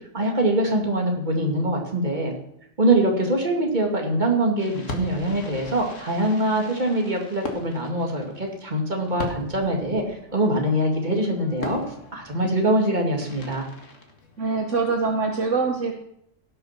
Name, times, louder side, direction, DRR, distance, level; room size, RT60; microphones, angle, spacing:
voice 1, 0.1-2.3 2.8-11.8 12.1-13.7, right 1 dB, 35° right, 1 dB, 2.6 m, -23 dB
Fireworks, 4.6-14.8, left 2 dB, 65° left, 2.1 m, -40 dB
voice 2, 14.4-15.9, right 4 dB, 65° right, 3 dB, 1.5 m, -24 dB
17.0 x 6.6 x 6.0 m, 0.71 s
omnidirectional pair, 1.4 m